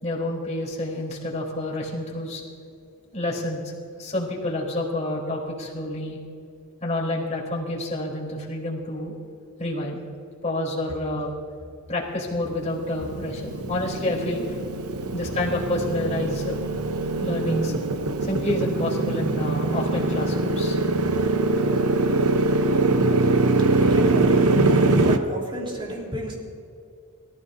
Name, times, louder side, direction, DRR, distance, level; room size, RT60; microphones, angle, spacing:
voice 1, 0.0-2.4 3.1-3.6 4.0-6.2 6.8-9.1 9.6-10.0 10.4-11.3 11.9-14.5 15.1-16.5 17.2-17.8 18.2-20.8, left 1 dB, 30° left, -3 dB, 3.6 m, -28 dB
Motorcycle, 12.5-25.2, right 3 dB, 75° right, 0.9 m, -23 dB
voice 2, 14.7-15.4 23.7-24.7 25.0-26.3, equal, 25° right, -2 dB, 3.5 m, -32 dB
23.5 x 14.5 x 2.7 m, 2.5 s
head